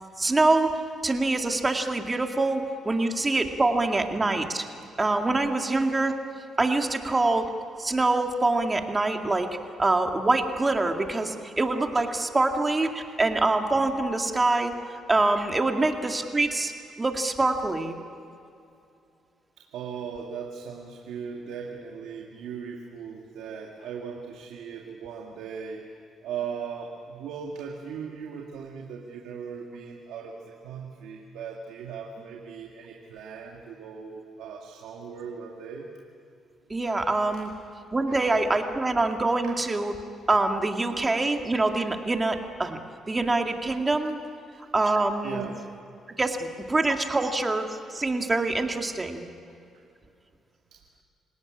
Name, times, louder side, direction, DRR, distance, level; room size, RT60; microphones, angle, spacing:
voice 1, 0.2-4.7 5.0-6.1 6.6-7.5 7.8-9.5 9.8-16.7 17.0-18.0 36.7-37.5 37.9-39.9 40.3-42.8 43.1-44.2 44.7-45.5 46.2-49.3, right 2 dB, 20° right, 4 dB, 2.3 m, -25 dB
voice 2, 19.6-25.9 26.2-35.9 37.3-37.5 38.1-38.3 39.4-39.6 45.2-45.6 50.7-50.8, right 6 dB, 90° right, 0 dB, 2.1 m, -38 dB
27.0 x 18.0 x 10.0 m, 2.5 s
cardioid pair, 90°, 0 cm